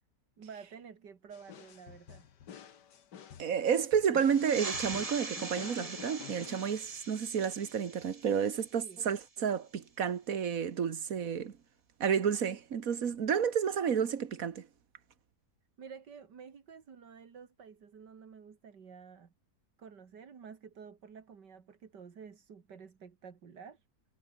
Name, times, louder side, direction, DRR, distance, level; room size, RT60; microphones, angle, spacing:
voice 1, 0.4-2.2 8.8-9.1 15.8-19.3 19.8-23.8, right 6 dB, 85° right, 2.7 m, -51 dB
sound 1, 1.3-7.2, left 8 dB, 90° left, 2.0 m, -50 dB
voice 2, 3.4-11.5 12.0-14.7, right 7 dB, 55° right, 1.8 m, -31 dB
sound 2, 4.2-9.4, right 3 dB, 20° right, 1.5 m, -43 dB
omnidirectional pair, 1.8 m